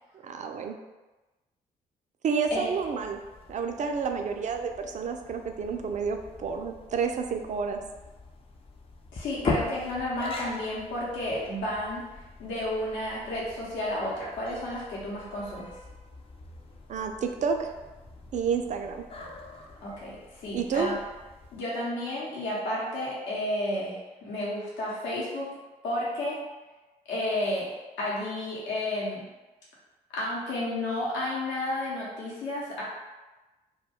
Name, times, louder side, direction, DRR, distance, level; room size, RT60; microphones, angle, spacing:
voice 1, 0.2-0.8 2.2-3.2 3.5-7.8 16.9-17.7 18.3-19.0 20.5-20.9, right 6 dB, 35° right, 5 dB, 0.4 m, -30 dB
sound 1, 2.4-21.6, left 3 dB, 25° left, 0.5 m, -41 dB
voice 2, 9.1-15.7 19.8-21.0 21.5-25.5 25.8-26.4 27.1-29.2 30.1-32.8, left 1 dB, 65° left, -6 dB, 0.8 m, -32 dB
2.2 x 2.2 x 3.4 m, 1.1 s
hypercardioid pair, 45°, 20 cm